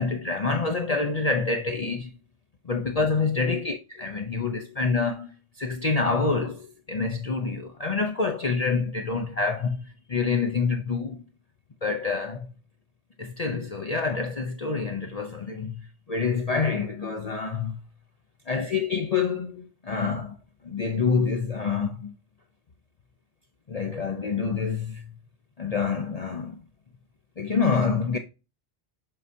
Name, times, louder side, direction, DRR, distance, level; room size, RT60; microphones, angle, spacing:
voice 1, 0.0-2.1 2.6-11.2 11.8-12.5 13.2-17.8 18.5-20.4 20.6-22.1 23.7-25.1 25.6-26.6 27.4-28.2, left 4 dB, 40° left, 0.7 m, -27 dB
7.7 x 4.7 x 2.7 m
omnidirectional pair, 1.1 m